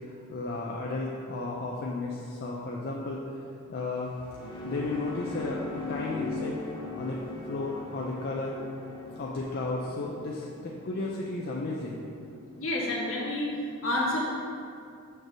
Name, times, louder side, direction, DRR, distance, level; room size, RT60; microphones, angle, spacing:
voice 1, 0.0-3.2 3.7-4.1 4.6-6.6 7.0-8.6 9.2-12.0, left 2 dB, 45° left, -3 dB, 0.5 m, -34 dB
sound 1, 3.9-12.6, left 3 dB, 20° left, 1.2 m, -40 dB
voice 2, 12.6-14.2, left 1 dB, 65° left, -5 dB, 1.6 m, -29 dB
6.5 x 3.4 x 6.0 m, 2.4 s
head